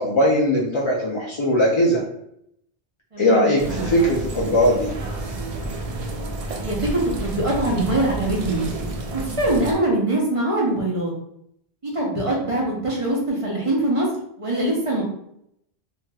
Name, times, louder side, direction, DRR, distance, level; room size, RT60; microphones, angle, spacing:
voice 1, 0.0-2.0 3.2-4.9, equal, 45° left, -5 dB, 0.4 m, -19 dB
voice 2, 3.1-3.5 6.6-8.6 9.1-11.1 11.8-14.1 14.4-15.0, right 1 dB, 35° right, -3 dB, 0.7 m, -23 dB
sound 1, 3.6-9.7, right 2 dB, 55° right, 0.4 m, -30 dB
3.1 x 2.8 x 2.3 m, 0.75 s
omnidirectional pair, 1.1 m